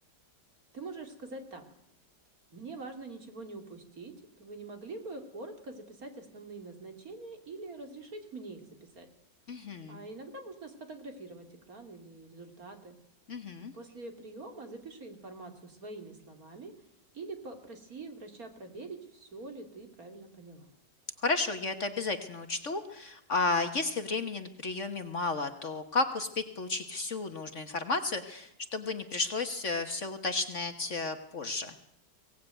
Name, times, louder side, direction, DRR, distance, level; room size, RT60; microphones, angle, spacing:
voice 1, 0.7-1.6 2.5-9.1 9.9-13.0 13.6-16.7 17.1-20.7, right 3 dB, 55° right, 5 dB, 3.4 m, -45 dB
voice 2, 9.5-10.0 13.3-13.7 21.2-31.7, left 3 dB, 45° left, 8 dB, 1.6 m, -33 dB
22.5 x 18.0 x 9.1 m, 0.79 s
omnidirectional pair, 1.9 m